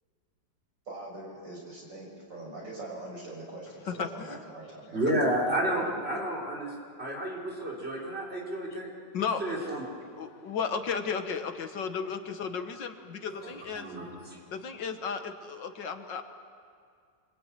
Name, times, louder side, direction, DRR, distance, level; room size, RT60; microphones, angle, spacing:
voice 1, 0.9-5.0 5.6-6.1, right 2 dB, 75° right, -2 dB, 7.2 m, -42 dB
voice 2, 3.9-4.5 9.1-9.7 10.2-13.9 14.5-16.2, left 6 dB, 75° left, 7 dB, 2.1 m, -34 dB
voice 3, 4.9-6.7 7.0-8.9 9.1-9.9 13.4-14.4, right 1 dB, 30° right, -3 dB, 5.0 m, -31 dB
26.0 x 22.5 x 9.2 m, 2.3 s
omnidirectional pair, 2.0 m